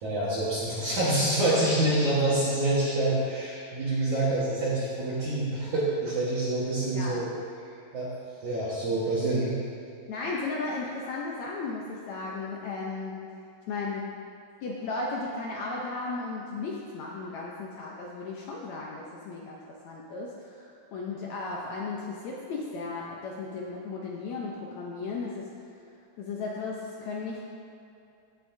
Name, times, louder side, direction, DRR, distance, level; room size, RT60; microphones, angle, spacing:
voice 1, 0.0-7.3 7.9-8.1 8.4-9.6, right 1 dB, 60° right, -8 dB, 2.6 m, -26 dB
voice 2, 10.1-13.2 13.7-14.1 14.6-25.5 26.2-27.4, left 3 dB, 80° left, -3 dB, 1.6 m, -35 dB
16.5 x 8.2 x 2.7 m, 2.6 s
omnidirectional pair, 4.3 m